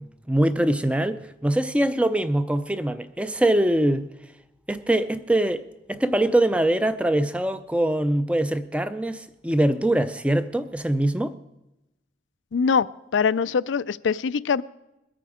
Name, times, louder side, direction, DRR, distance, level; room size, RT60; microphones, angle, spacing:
voice 1, 0.0-4.1 4.7-11.3, right 1 dB, 5° right, 0.4 m, -23 dB
voice 2, 12.5-12.9 13.1-14.6, left 6 dB, 90° left, 0.4 m, -22 dB
21.5 x 8.8 x 4.9 m
head